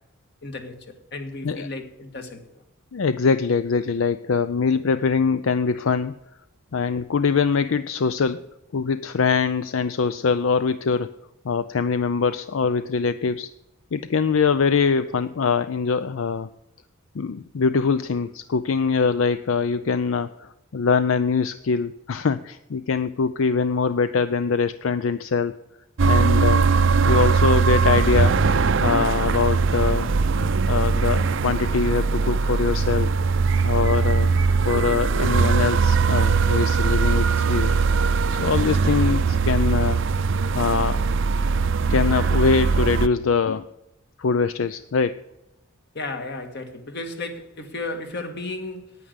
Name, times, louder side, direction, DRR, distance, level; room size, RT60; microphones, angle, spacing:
voice 1, 0.4-2.6 45.9-49.0, left 2 dB, 55° left, 1.8 m, -34 dB
voice 2, 2.9-6.1 6.7-8.5 8.7-11.1 11.4-13.5 13.9-16.5 17.1-25.6 26.0-26.7 27.1-28.5 28.8-30.1 30.4-33.1 33.6-34.3 34.6-37.8 38.4-40.0 40.5-41.0 41.9-43.7 44.2-45.2, left 5 dB, 80° left, 0.5 m, -23 dB
sound 1, 26.0-43.1, right 4 dB, 65° right, 0.5 m, -20 dB
9.6 x 9.3 x 8.0 m
head